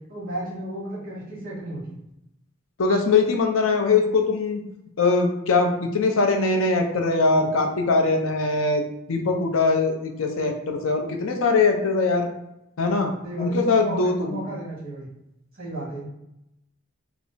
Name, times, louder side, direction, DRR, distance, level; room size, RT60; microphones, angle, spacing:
voice 1, 0.1-2.0 13.2-15.1 15.5-16.1, right 1 dB, 45° right, -6 dB, 1.5 m, -33 dB
voice 2, 2.8-4.6 5.0-8.8 9.1-12.3 12.8-14.4, left 3 dB, 85° left, 3 dB, 0.6 m, -22 dB
3.3 x 2.0 x 3.9 m, 0.86 s
head